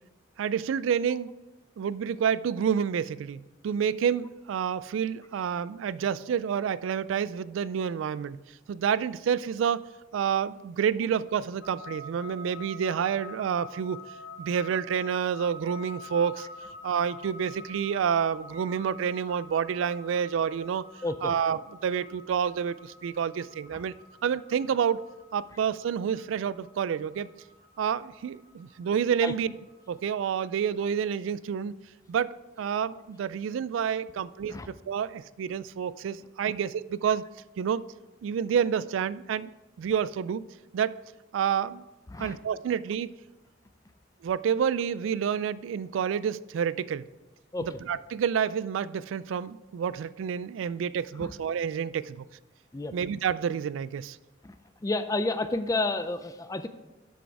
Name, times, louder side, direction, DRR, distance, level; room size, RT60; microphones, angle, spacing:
voice 1, 0.4-1.3 1.8-8.4 8.7-9.9 10.1-14.0 14.4-16.5 16.8-20.8 21.2-23.9 24.2-25.0 25.3-27.3 27.8-29.6 29.9-31.8 32.1-37.2 37.6-37.8 38.2-39.5 39.8-40.4 40.7-41.0 41.3-41.8 42.2-43.1 44.2-47.0 47.6-52.3 52.9-54.2, right 7 dB, 90° right, 18 dB, 0.3 m, -29 dB
sound 1, 11.6-30.7, left 2 dB, 90° left, 1.2 m, -47 dB
voice 2, 54.8-56.7, left 2 dB, 20° left, 10 dB, 0.4 m, -30 dB
8.1 x 6.3 x 4.6 m, 1.0 s
head